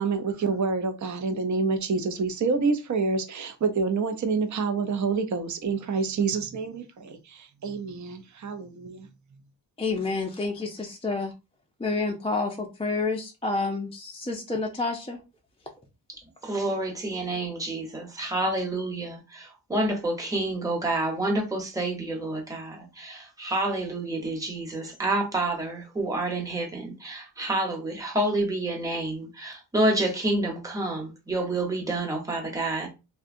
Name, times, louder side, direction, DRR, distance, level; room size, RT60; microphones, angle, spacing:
voice 1, 0.0-9.1, right 4 dB, 40° right, 0.5 m, -27 dB
voice 2, 9.8-11.3 11.8-15.2, left 3 dB, 15° left, 0.4 m, -29 dB
voice 3, 16.4-32.9, right 2 dB, 10° right, 0.9 m, -28 dB
2.7 x 2.2 x 2.5 m
cardioid pair, 65°, 45 cm